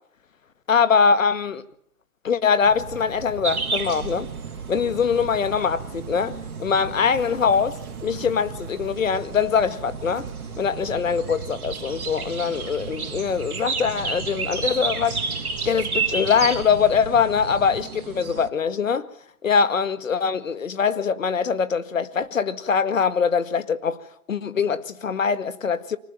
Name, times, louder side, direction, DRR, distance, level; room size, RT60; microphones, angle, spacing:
voice 1, 0.7-1.6 2.2-4.3 4.7-7.8 8.0-10.3 10.6-15.2 15.7-19.1 19.4-24.0 24.3-26.0, left 6 dB, 60° left, 2.0 m, -22 dB
sound 1, 2.6-17.8, right 7 dB, 10° right, 1.0 m, -39 dB
sound 2, 3.4-18.5, right 4 dB, 70° right, 3.5 m, -33 dB
25.0 x 19.5 x 9.4 m
hypercardioid pair, 160°, 45 cm